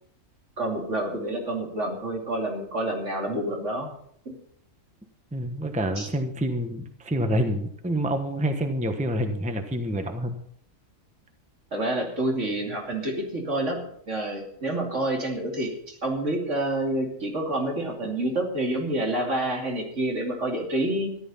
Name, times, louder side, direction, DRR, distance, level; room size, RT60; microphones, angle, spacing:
voice 1, 0.6-3.9 4.2-4.3 6.0-6.1 11.7-13.8 14.1-21.1, right 1 dB, 60° right, 1 dB, 3.1 m, -28 dB
voice 2, 5.3-10.3, right 1 dB, 5° right, 6 dB, 1.1 m, -27 dB
14.0 x 11.0 x 5.7 m, 0.68 s
omnidirectional pair, 1.4 m